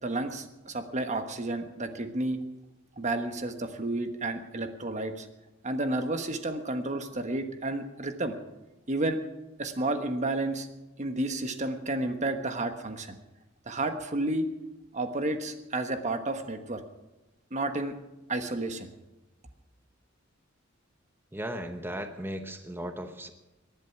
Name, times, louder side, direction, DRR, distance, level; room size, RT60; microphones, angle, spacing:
voice 1, 0.0-2.4 3.0-5.3 5.6-8.4 8.9-9.2 9.6-10.7 11.0-13.2 13.7-14.5 14.9-16.8 17.5-17.9 18.3-18.9, right 2 dB, 35° right, 7 dB, 1.3 m, -31 dB
voice 2, 21.3-23.3, equal, 10° right, 7 dB, 1.0 m, -36 dB
19.0 x 11.0 x 5.9 m, 1.0 s
head